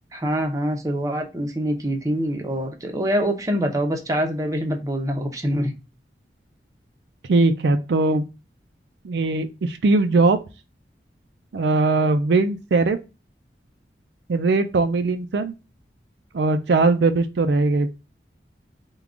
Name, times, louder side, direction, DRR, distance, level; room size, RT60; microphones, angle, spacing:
voice 1, 0.1-5.7, equal, 20° right, 0.6 m, -25 dB
voice 2, 7.3-8.2 9.0-10.4 11.5-13.0 14.3-15.5 16.3-17.9, right 3 dB, 75° right, 0.4 m, -20 dB
3.7 x 2.3 x 3.4 m
head